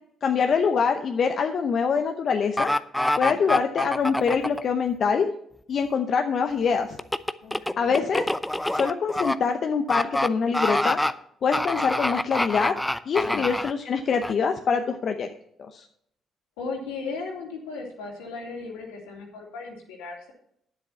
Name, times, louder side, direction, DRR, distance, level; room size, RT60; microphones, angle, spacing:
voice 1, 0.2-2.7 3.2-5.3 5.7-6.9 7.8-8.2 8.7-11.0 11.4-12.7 13.1-15.3 15.7-15.8, left 6 dB, 55° left, 5 dB, 0.8 m, -24 dB
sound 1, 2.6-4.6 7.0-9.3 9.9-10.3 10.5-11.1 11.5-13.7 14.2-14.3, left 1 dB, 10° left, 0.6 m, -25 dB
voice 2, 3.3-3.6 7.4-8.1 13.2-13.5 16.6-20.3, left 4 dB, 90° left, -2 dB, 3.4 m, -37 dB
9.7 x 7.8 x 5.7 m, 0.69 s
hypercardioid pair, 55°, 0 cm